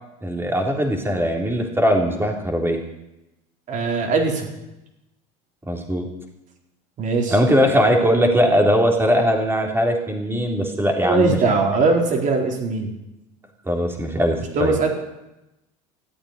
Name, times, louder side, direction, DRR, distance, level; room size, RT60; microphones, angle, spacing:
voice 1, 0.2-2.8 5.7-6.1 7.3-11.4 13.7-14.8, equal, 15° right, 2 dB, 3.5 m, -20 dB
voice 2, 3.7-4.5 7.0-7.4 11.0-12.9 14.5-14.9, right 3 dB, 45° right, 2 dB, 4.1 m, -20 dB
14.5 x 8.7 x 9.7 m, 0.93 s
supercardioid pair, 105°, 18 cm